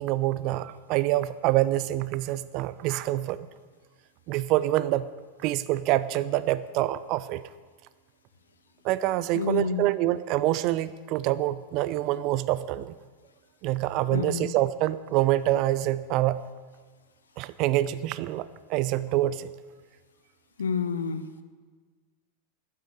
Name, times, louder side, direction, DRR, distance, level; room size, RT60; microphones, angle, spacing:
voice 1, 0.0-3.4 4.3-5.1 5.4-7.4 8.8-13.0 13.6-16.5 17.4-19.5, right 15 dB, 40° right, 16 dB, 0.6 m, -26 dB
voice 2, 9.3-9.9 14.1-14.5 20.6-21.3, left 6 dB, 70° left, 10 dB, 1.1 m, -29 dB
12.0 x 9.7 x 9.3 m, 1.4 s
figure-of-eight pair, 90°, 0 cm